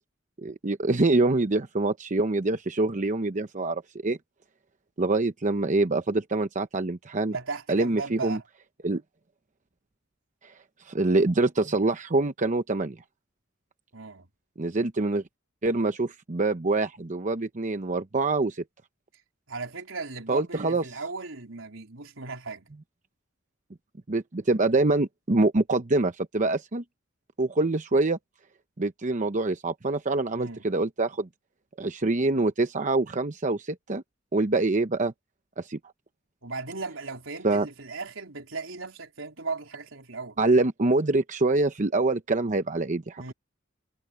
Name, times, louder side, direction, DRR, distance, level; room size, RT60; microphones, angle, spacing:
voice 1, 0.4-4.2 5.0-7.3 7.7-8.4 8.8-9.0 10.9-13.0 14.6-15.2 15.6-18.6 20.3-20.8 24.1-26.8 27.4-28.2 28.8-31.3 31.8-34.0 34.3-35.1 35.6-35.8 37.4-37.7 40.4-43.2, right 2 dB, 40° right, 0.9 m, -25 dB
voice 2, 7.3-8.4 13.9-14.3 19.5-22.7 30.3-30.7 36.4-40.4 43.2-43.3, right 4 dB, 80° right, 4.0 m, -37 dB
head